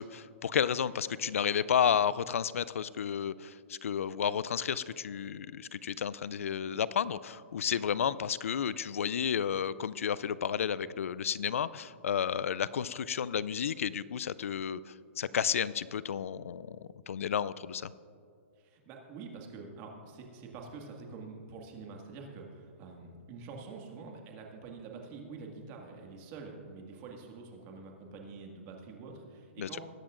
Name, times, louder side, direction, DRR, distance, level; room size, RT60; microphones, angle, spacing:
voice 1, 0.0-16.8 17.1-17.9 29.6-29.7, left 8 dB, 85° left, 18 dB, 0.4 m, -32 dB
voice 2, 18.6-29.8, right 4 dB, 35° right, 1 dB, 1.9 m, -46 dB
20.5 x 8.9 x 2.5 m, 2.3 s
hypercardioid pair, 145°, 7 cm